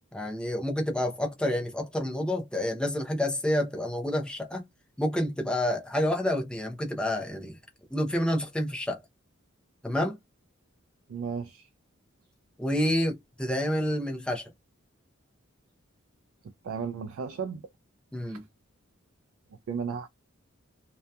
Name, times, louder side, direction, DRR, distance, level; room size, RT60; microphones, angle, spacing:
voice 1, 0.1-4.6 5.0-7.6 7.9-9.0 9.8-10.2 12.6-14.5 18.1-18.4, left 1 dB, 5° left, 0.5 m, -28 dB
voice 2, 11.1-11.7 16.4-17.6 18.3-18.4 19.7-20.1, right 6 dB, 80° right, 0.3 m, -35 dB
2.7 x 2.2 x 2.2 m
head